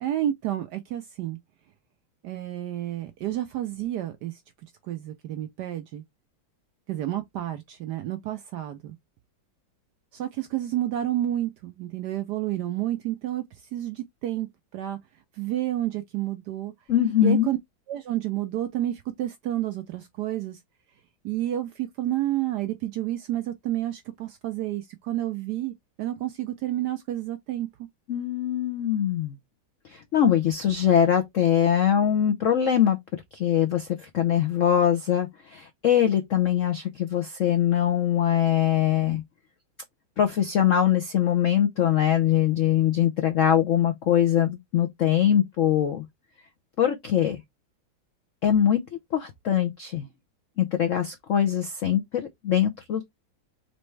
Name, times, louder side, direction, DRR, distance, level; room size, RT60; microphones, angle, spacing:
voice 1, 0.0-1.4 2.2-4.4 4.8-6.0 6.9-9.0 10.1-14.5 14.7-15.0 15.4-16.7 17.2-17.6 17.9-20.6 21.2-27.7, right 13 dB, 75° right, 0.9 m, -30 dB
voice 2, 16.9-17.5 28.1-29.3 29.9-33.0 33.3-39.2 40.2-46.0 46.8-47.4 48.4-48.9 49.1-50.1 50.6-53.1, left 10 dB, 75° left, 0.7 m, -22 dB
4.1 x 3.4 x 3.2 m
omnidirectional pair, 2.2 m